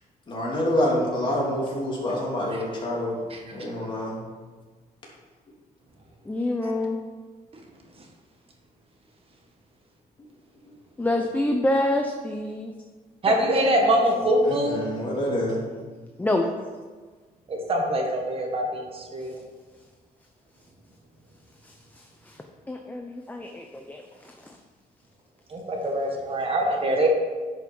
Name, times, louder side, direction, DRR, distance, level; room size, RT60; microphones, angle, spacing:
voice 1, 0.3-3.2 3.5-4.1 14.4-15.6, left 1 dB, 35° left, -4 dB, 3.2 m, -26 dB
voice 2, 6.2-7.0 11.0-12.7 13.3-13.9 16.2-16.5 21.6-22.4 22.7-24.6, left 1 dB, 10° left, 3 dB, 0.7 m, -28 dB
voice 3, 13.2-14.8 17.5-19.4 25.5-27.1, right 1 dB, 40° right, 1 dB, 1.6 m, -24 dB
10.5 x 6.0 x 5.4 m, 1.4 s
cardioid pair, 135°, 15 cm